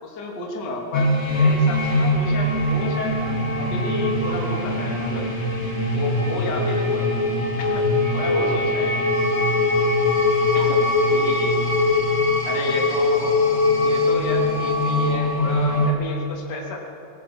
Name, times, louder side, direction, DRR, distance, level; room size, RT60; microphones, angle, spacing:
voice 1, 0.0-5.3 5.9-7.1 7.6-8.9 10.5-10.8 11.1-11.6 12.4-13.4 13.8-16.8, left 3 dB, 25° left, -1 dB, 2.7 m, -31 dB
sound 1, 0.9-15.9, left 2 dB, 40° left, 1.1 m, -21 dB
26.0 x 18.5 x 6.1 m, 2.7 s
omnidirectional pair, 5.9 m